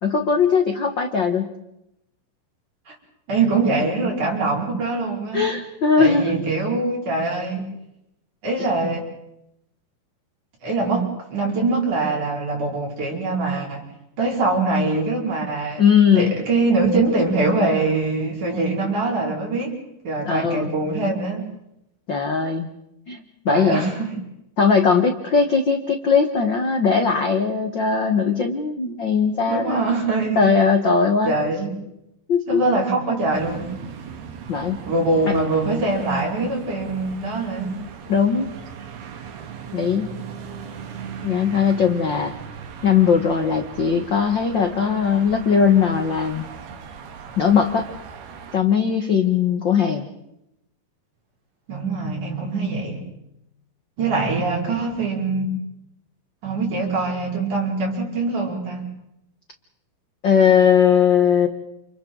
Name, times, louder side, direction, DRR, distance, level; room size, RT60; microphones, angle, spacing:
voice 1, 0.0-1.5 5.3-6.4 15.8-16.3 20.2-20.7 22.1-22.7 23.1-23.9 24.6-29.8 30.3-31.3 32.3-32.6 34.5-34.8 35.3-35.4 38.1-38.5 39.7-40.1 41.2-42.3 42.8-46.4 47.4-47.9 48.5-50.1 60.2-61.5, left 6 dB, 60° left, 5 dB, 1.2 m, -19 dB
voice 2, 3.3-5.5 6.0-7.6 8.4-9.0 10.6-13.8 14.2-15.9 16.1-19.8 20.0-21.5 23.5-24.2 29.5-30.5 31.2-31.7 32.5-33.7 34.9-37.8 51.7-53.0 54.0-55.5 56.4-58.9, right 3 dB, 55° right, -2 dB, 6.6 m, -23 dB
sound 1, 33.3-48.6, right 6 dB, 85° right, 3.8 m, -38 dB
30.0 x 29.5 x 4.0 m, 0.83 s
omnidirectional pair, 4.4 m